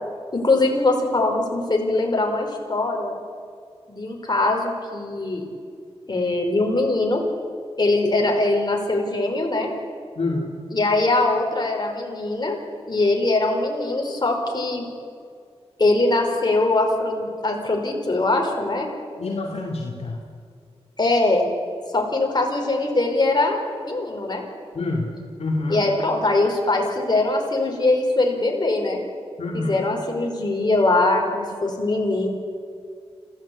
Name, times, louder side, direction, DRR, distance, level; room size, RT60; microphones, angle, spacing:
voice 1, 0.3-3.2 3.9-5.4 6.1-7.2 7.8-9.7 10.7-12.6 12.9-14.9 15.8-18.9 21.0-21.5 21.9-24.4 25.7-29.0 29.5-32.3, left 2 dB, 40° left, 1 dB, 4.9 m, -22 dB
voice 2, 10.2-10.5 19.2-20.2 24.7-25.1 25.4-25.8 29.4-29.9, left 2 dB, 70° left, -1 dB, 2.6 m, -27 dB
26.0 x 16.0 x 8.6 m, 2.3 s
wide cardioid pair, 75°, 11 cm